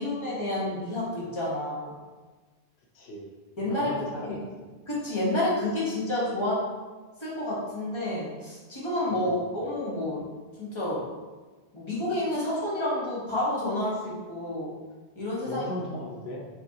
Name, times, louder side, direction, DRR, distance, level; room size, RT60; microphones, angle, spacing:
voice 1, 0.0-1.9 3.6-3.9 4.2-4.4 4.9-6.6 7.2-10.2 10.6-11.0 11.7-14.7 15.1-15.6, left 1 dB, 25° left, -7 dB, 1.3 m, -29 dB
voice 2, 2.9-3.3 3.7-4.7 9.1-9.4 15.4-16.5, left 1 dB, 80° left, -2 dB, 0.9 m, -37 dB
5.4 x 3.2 x 2.8 m, 1.3 s
omnidirectional pair, 1.1 m